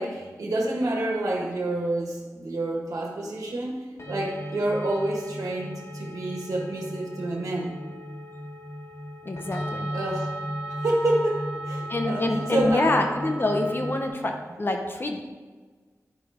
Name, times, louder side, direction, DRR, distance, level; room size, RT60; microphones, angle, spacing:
voice 1, 0.0-7.7 9.9-10.3 10.8-12.9, right 1 dB, 75° right, -1 dB, 1.5 m, -28 dB
sound 1, 4.0-14.1, equal, 55° left, 1.9 m, -35 dB
voice 2, 9.2-9.9 11.9-15.2, left 2 dB, 40° left, 4 dB, 0.7 m, -26 dB
11.0 x 5.0 x 3.5 m, 1.4 s
wide cardioid pair, 80°, 6 cm